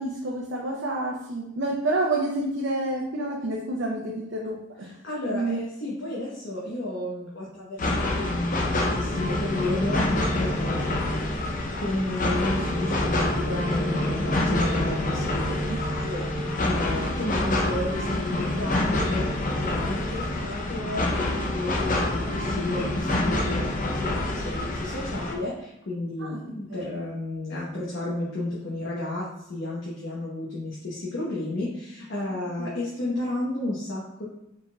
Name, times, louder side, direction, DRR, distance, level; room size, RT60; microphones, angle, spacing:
voice 1, 0.0-4.9 5.3-5.6 10.2-10.5 10.7-10.9 15.7-15.9 26.2-26.4 26.8-27.0 32.6-32.7, right 2 dB, 65° right, -2 dB, 0.6 m, -29 dB
voice 2, 4.8-11.3 11.8-34.2, left 1 dB, 70° left, -6 dB, 1.0 m, -32 dB
sound 1, 7.8-25.3, left 2 dB, 45° left, 0.6 m, -27 dB
sound 2, 9.1-20.4, right 1 dB, 10° right, 1.2 m, -35 dB
4.9 x 3.8 x 2.3 m, 0.82 s
head